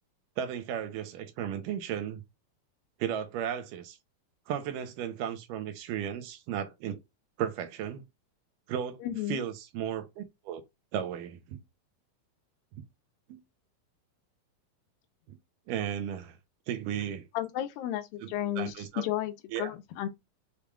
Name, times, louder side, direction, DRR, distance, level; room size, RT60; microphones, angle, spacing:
voice 1, 0.4-2.2 3.0-4.0 4.5-7.0 7.4-8.0 8.7-9.0 9.3-10.6 10.9-11.6 13.3-13.4 15.3-15.4 15.7-16.4 16.7-17.3 18.2-18.3 18.6-19.1 19.5-19.7, right 9 dB, 75° right, 2.3 m, -35 dB
voice 2, 9.0-9.4 17.3-19.3 19.6-20.1, left 12 dB, 85° left, 2.5 m, -33 dB
7.0 x 3.3 x 2.3 m
omnidirectional pair, 4.0 m